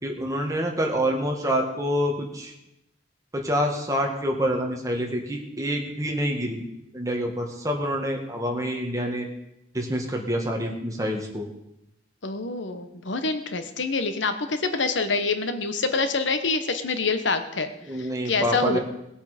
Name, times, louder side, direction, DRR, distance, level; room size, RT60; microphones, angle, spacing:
voice 1, 0.0-2.5 3.3-6.6 6.9-9.3 9.7-11.5 17.8-18.8, equal, 20° right, 1 dB, 1.9 m, -27 dB
voice 2, 12.2-17.7 18.0-18.8, left 3 dB, 75° left, 9 dB, 1.2 m, -26 dB
19.0 x 8.4 x 5.1 m, 0.85 s
head